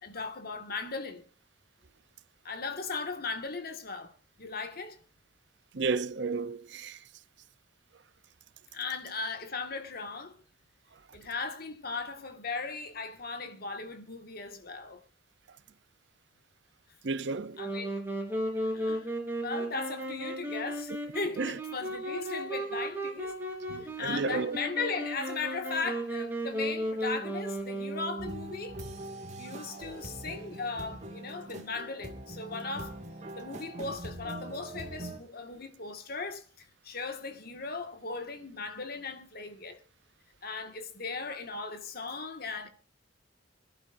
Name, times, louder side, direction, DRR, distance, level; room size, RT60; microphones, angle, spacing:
voice 1, 0.0-1.2 2.4-5.0 8.7-10.4 11.1-15.0 17.6-18.0 18.7-19.1 19.4-23.4 23.8-28.8 29.4-33.0 33.3-39.8 40.4-42.7, left 4 dB, 55° left, 1.8 m, -37 dB
voice 2, 5.7-7.0 17.0-17.6 21.4-21.6 23.7-24.6, right 4 dB, 65° right, 0.7 m, -32 dB
Wind instrument woodwind instrument, 17.6-28.5, right 1 dB, 10° right, 3.6 m, -35 dB
sound 1, 28.2-35.2, right 1 dB, 40° right, 2.1 m, -42 dB
26.5 x 11.5 x 2.6 m
head